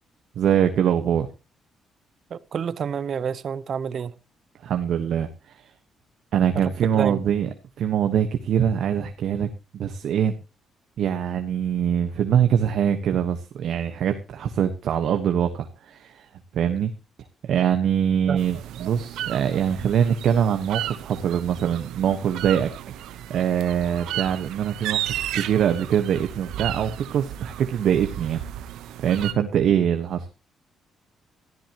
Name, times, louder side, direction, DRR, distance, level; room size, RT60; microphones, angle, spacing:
voice 1, 0.3-1.3 4.6-5.3 5.5-5.7 6.3-7.5 7.8-9.5 9.7-10.3 11.0-16.3 16.5-16.9 17.4-22.7 23.3-28.4 29.0-30.2, right 9 dB, 70° right, 1.3 m, -23 dB
voice 2, 2.3-4.1 6.6-7.2 18.3-18.4, right 7 dB, 55° right, 0.9 m, -29 dB
sound 1, 18.4-29.3, right 12 dB, 85° right, 1.1 m, -34 dB
18.5 x 14.0 x 3.0 m
cardioid pair, 90°, 0 cm